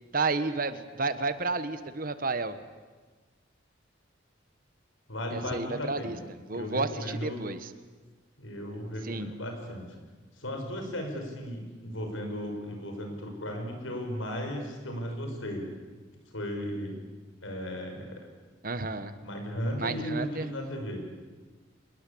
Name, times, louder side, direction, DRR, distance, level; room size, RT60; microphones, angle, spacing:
voice 1, 0.1-2.6 5.3-6.2 6.5-7.7 9.0-9.3 18.6-19.1 19.8-20.5, right 3 dB, 45° right, 12 dB, 1.3 m, -31 dB
voice 2, 5.1-6.2 6.5-7.4 8.4-10.0 10.4-15.6 16.3-17.0 17.4-18.3 19.2-21.0, equal, 75° left, 4 dB, 6.1 m, -35 dB
27.0 x 20.5 x 8.6 m, 1.3 s
head